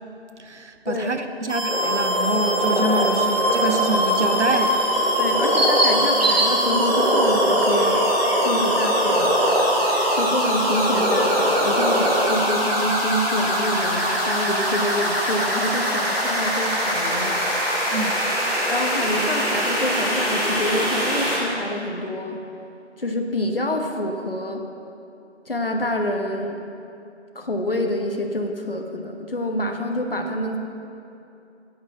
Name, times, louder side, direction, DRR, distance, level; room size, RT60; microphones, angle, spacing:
voice 1, 0.4-4.8 17.9-18.2, right 2 dB, 80° right, 7 dB, 1.1 m, -26 dB
sound 1, 1.5-21.3, equal, ahead, 2.7 m, -23 dB
sound 2, 1.7-12.3, right 1 dB, 60° right, 2.1 m, -23 dB
voice 2, 5.2-8.1 8.4-9.4 10.1-17.4 18.7-22.4 23.0-24.6 25.5-26.6 27.3-30.6, left 1 dB, 55° left, 3 dB, 1.3 m, -27 dB
10.0 x 8.9 x 7.1 m, 2.8 s
figure-of-eight pair, 175°, 34 cm